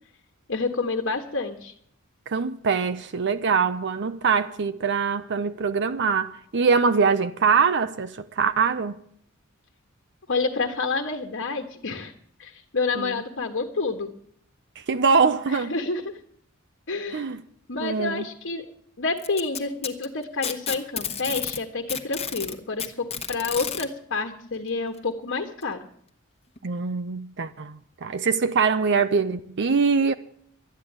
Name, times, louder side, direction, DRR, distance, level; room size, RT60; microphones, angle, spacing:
voice 1, 0.5-1.7 10.3-12.1 12.4-14.1 15.5-16.2 16.9-17.3 17.7-18.6 19.0-22.9 23.3-25.8, left 3 dB, 55° left, 1.4 m, -28 dB
voice 2, 2.3-9.0 13.0-13.1 14.8-15.7 17.1-17.4 17.8-18.2 26.6-30.1, right 5 dB, 55° right, 0.6 m, -23 dB
Packing tape duct tape, 19.2-21.6 21.9-23.9 25.0-25.1 25.6-25.7 26.6-26.7, left 7 dB, 30° left, 1.3 m, -31 dB
12.5 x 9.7 x 8.7 m
head